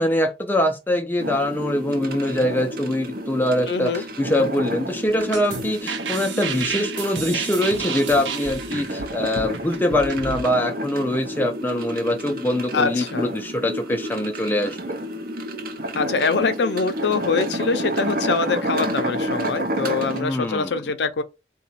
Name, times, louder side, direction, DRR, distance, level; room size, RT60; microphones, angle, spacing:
voice 1, 0.0-15.0 20.2-20.7, left 1 dB, 10° left, 0.4 m, -23 dB
sound 1, 1.2-20.2, right 1 dB, 50° right, 0.6 m, -30 dB
voice 2, 3.7-4.0 12.7-13.3 15.9-21.2, left 4 dB, 70° left, 0.5 m, -24 dB
sound 2, 5.1-10.5, right 5 dB, 85° right, 0.7 m, -32 dB
4.0 x 2.2 x 4.0 m
head